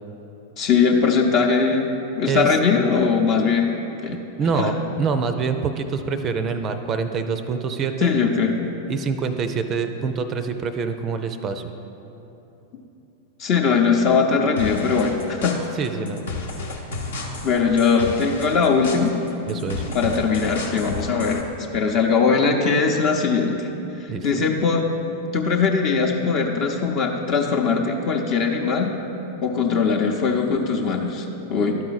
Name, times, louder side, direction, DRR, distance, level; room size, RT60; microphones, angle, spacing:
voice 1, 0.6-3.7 4.0-4.2 4.6-4.7 8.0-8.6 13.4-15.6 17.4-19.1 19.9-21.4 21.7-23.7 24.0-24.9 25.3-29.0 29.4-31.8, left 5 dB, 40° left, 2 dB, 0.7 m, -20 dB
voice 2, 4.4-8.1 8.9-11.7 15.8-16.2 19.5-19.9 24.1-24.4, right 5 dB, 35° right, 8 dB, 0.4 m, -25 dB
sound 1, 14.6-21.4, left 2 dB, 75° left, 0.9 m, -33 dB
11.5 x 4.7 x 4.0 m, 3.0 s
figure-of-eight pair, 95°, 0 cm